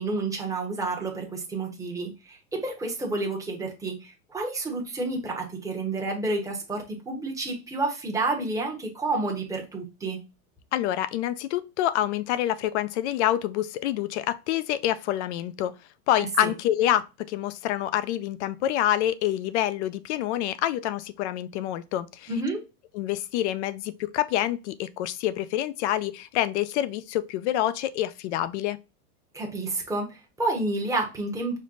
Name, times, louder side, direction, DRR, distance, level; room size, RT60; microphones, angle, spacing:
voice 1, 0.0-10.2 16.2-16.5 22.3-22.6 29.3-31.6, right 2 dB, 5° right, 0.9 m, -30 dB
voice 2, 10.7-15.7 16.1-22.3 22.9-28.8, left 12 dB, 50° left, 0.5 m, -27 dB
5.3 x 2.1 x 3.8 m
hypercardioid pair, 130°, 46 cm